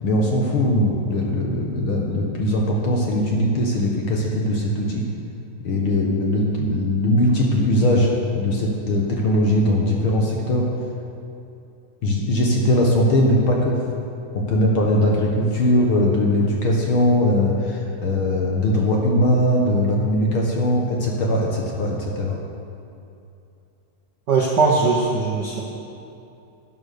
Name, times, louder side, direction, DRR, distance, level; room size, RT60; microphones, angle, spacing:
voice 1, 0.0-5.0 5.6-10.7 12.0-13.8 14.3-22.4, left 1 dB, 55° left, -1 dB, 1.7 m, -20 dB
voice 2, 24.3-25.6, right 4 dB, 60° right, -2 dB, 1.1 m, -19 dB
11.5 x 9.3 x 6.6 m, 2.7 s
omnidirectional pair, 3.4 m